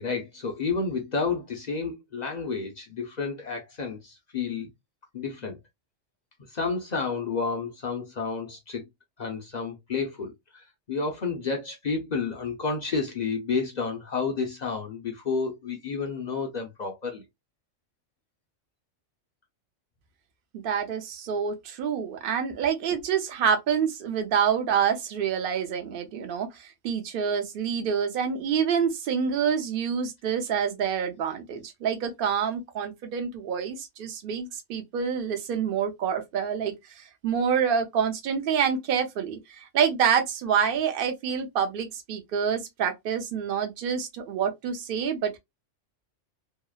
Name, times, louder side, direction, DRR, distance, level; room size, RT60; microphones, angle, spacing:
voice 1, 0.0-4.7 5.1-5.6 6.5-8.9 9.2-17.2, left 4 dB, 50° left, 0.5 m, -30 dB
voice 2, 20.5-45.4, right 7 dB, 55° right, 0.7 m, -27 dB
2.8 x 2.0 x 2.2 m
omnidirectional pair, 1.3 m